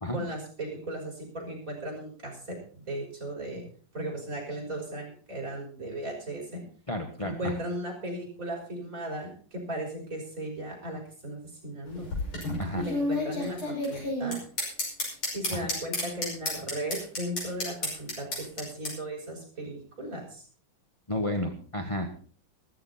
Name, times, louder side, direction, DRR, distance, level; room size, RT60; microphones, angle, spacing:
voice 1, 0.1-3.6 3.9-6.6 7.2-12.1 12.7-14.4 15.3-20.4, right 1 dB, 40° right, -1 dB, 5.9 m, -36 dB
voice 2, 6.9-7.5 12.6-12.8 15.5-15.7 21.1-22.1, left 1 dB, 20° left, 3 dB, 1.1 m, -32 dB
sound 1, 11.9-18.9, left 1 dB, 85° left, 6.7 m, -31 dB
14.5 x 14.0 x 4.2 m, 0.43 s
omnidirectional pair, 2.3 m